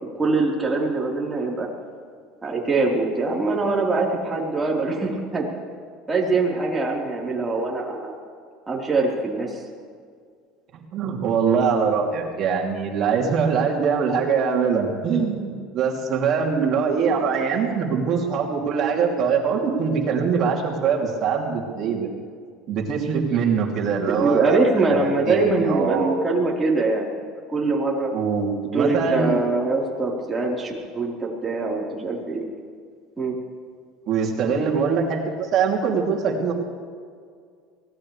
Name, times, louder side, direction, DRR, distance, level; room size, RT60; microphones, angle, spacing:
voice 1, 0.1-1.7 2.4-5.5 6.1-8.2 8.7-9.6 24.1-27.1 27.5-28.1 28.7-32.5 33.2-33.4, right 3 dB, 15° right, -3 dB, 4.2 m, -23 dB
voice 2, 10.9-22.1 22.7-24.6 25.3-26.2 28.1-29.4 34.1-36.5, right 6 dB, 50° right, 0 dB, 3.0 m, -23 dB
23.5 x 17.5 x 3.4 m, 2.1 s
hypercardioid pair, 85°, 0 cm